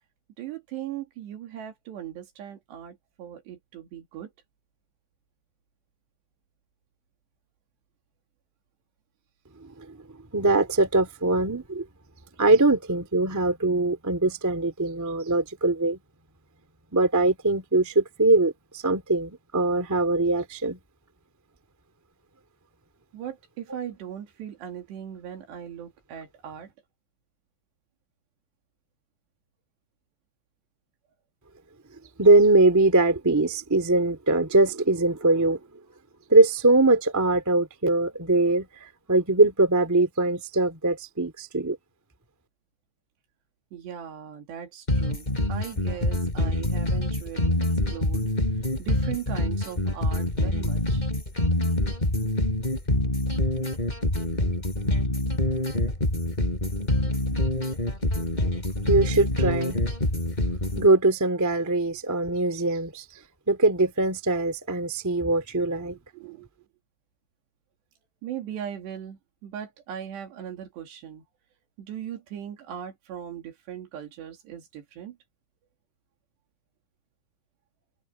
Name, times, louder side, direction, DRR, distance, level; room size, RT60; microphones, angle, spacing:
voice 1, 0.4-4.3 23.1-26.7 43.7-47.6 47.9-48.3 48.8-51.0 65.8-65.9 66.1-66.5 68.2-71.2 71.8-75.2, right 9 dB, 70° right, 4.7 m, -38 dB
voice 2, 9.6-10.0 10.3-11.8 12.4-16.0 16.9-20.8 32.2-35.6 36.3-41.8 58.9-59.8 60.8-63.0 63.5-66.0, right 2 dB, 20° right, 0.5 m, -22 dB
sound 1, 44.9-60.9, left 1 dB, 10° left, 4.3 m, -26 dB
open air
omnidirectional pair, 5.2 m